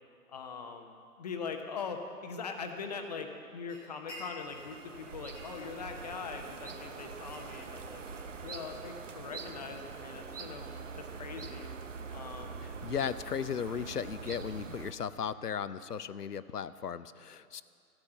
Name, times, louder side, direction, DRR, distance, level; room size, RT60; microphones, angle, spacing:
voice 1, 0.3-8.0 8.4-11.7 12.1-12.6, left 5 dB, 25° left, 5 dB, 0.9 m, -42 dB
sound 1, 3.7-4.7 5.1-6.3 6.7-9.4, equal, 5° right, 0.6 m, -52 dB
sound 2, 4.4-14.9, right 5 dB, 50° right, 0.9 m, -44 dB
voice 2, 12.6-17.6, left 7 dB, 75° left, 15 dB, 0.7 m, -36 dB
14.0 x 9.0 x 7.6 m, 2.3 s
figure-of-eight pair, 135°, 47 cm